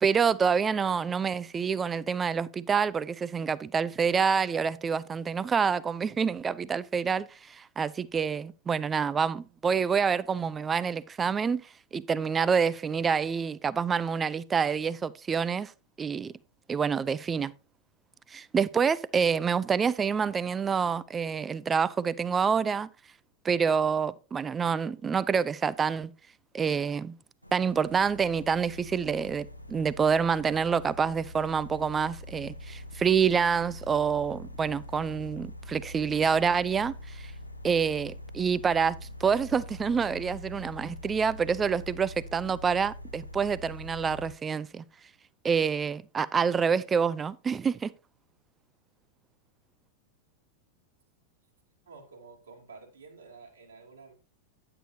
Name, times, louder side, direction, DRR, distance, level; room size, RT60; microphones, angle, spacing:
voice 1, 0.0-11.7 11.9-15.7 16.0-16.3 16.7-17.5 18.3-22.9 23.4-26.1 26.5-27.2 27.5-37.3 37.6-39.0 39.2-44.8 45.4-47.9, right 6 dB, 20° right, 0.4 m, -27 dB
sound 1, 27.4-44.3, left 1 dB, 90° left, 0.7 m, -44 dB
voice 2, 51.9-54.1, right 4 dB, 70° right, 2.6 m, -50 dB
10.0 x 8.7 x 2.8 m
figure-of-eight pair, 90°, 0 cm